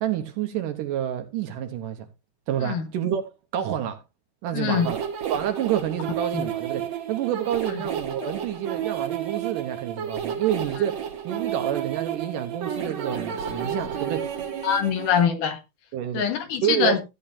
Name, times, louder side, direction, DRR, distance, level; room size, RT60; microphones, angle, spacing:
voice 1, 0.0-2.1 2.5-4.0 4.4-14.3 15.9-16.2 16.6-17.0, right 10 dB, 75° right, 2.3 m, -28 dB
voice 2, 4.5-4.9 6.3-6.5 8.2-8.3 14.6-15.6 16.1-17.0, left 7 dB, 70° left, 2.4 m, -23 dB
sound 1, 4.7-15.2, right 8 dB, 55° right, 2.5 m, -31 dB
14.0 x 8.6 x 2.7 m
omnidirectional pair, 4.1 m